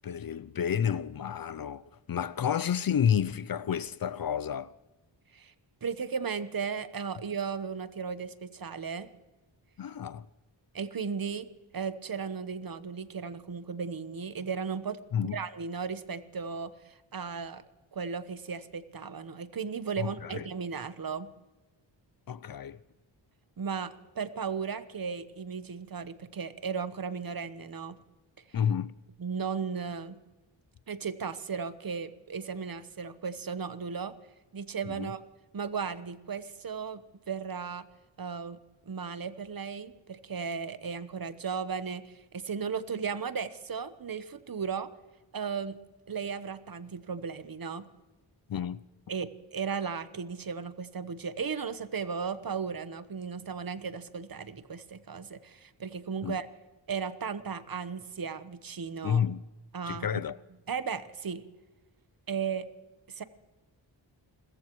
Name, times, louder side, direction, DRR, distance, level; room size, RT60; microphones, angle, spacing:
voice 1, 0.0-4.7 9.8-10.3 15.1-15.4 20.0-20.5 22.3-22.8 28.5-28.9 34.9-35.1 48.5-48.8 56.2-56.4 59.0-59.4 59.9-60.4, left 8 dB, 50° left, 0.5 m, -30 dB
voice 2, 5.8-9.1 10.7-11.5 11.7-17.6 17.9-21.3 23.6-28.0 29.2-30.2 30.9-34.1 34.5-35.2 35.5-37.9 38.2-38.6 38.9-44.9 45.3-45.8 46.1-47.9 49.1-56.5 56.9-59.2 59.7-60.2 60.7-61.4 62.3-62.7 63.1-63.2, right 6 dB, 50° right, 1.1 m, -35 dB
29.5 x 14.5 x 3.1 m
cardioid pair, 70°, 46 cm